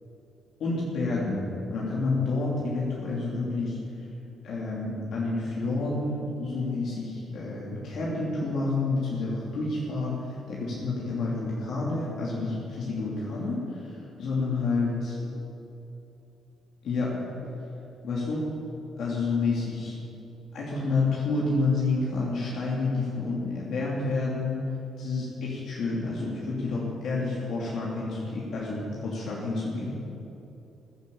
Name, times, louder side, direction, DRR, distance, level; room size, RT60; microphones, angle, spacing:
voice 1, 0.6-1.4 1.7-3.8 4.4-15.2 16.8-17.2 18.0-18.4 19.0-19.9 20.5-24.6 25.0-29.9, left 3 dB, 65° left, -6 dB, 3.2 m, -29 dB
15.0 x 11.0 x 7.3 m, 2.9 s
cardioid pair, 110°, 0 cm